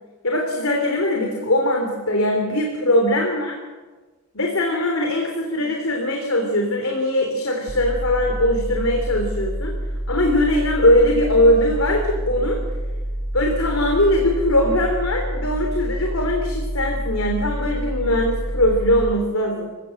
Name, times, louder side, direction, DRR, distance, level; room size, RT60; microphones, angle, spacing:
voice 1, 0.2-3.5 4.3-9.7 10.1-12.6 13.3-19.7, left 1 dB, 75° left, 2 dB, 3.2 m, -20 dB
sound 1, 7.7-19.1, right 1 dB, ahead, 2.6 m, -28 dB
27.5 x 16.5 x 7.7 m, 1.3 s
head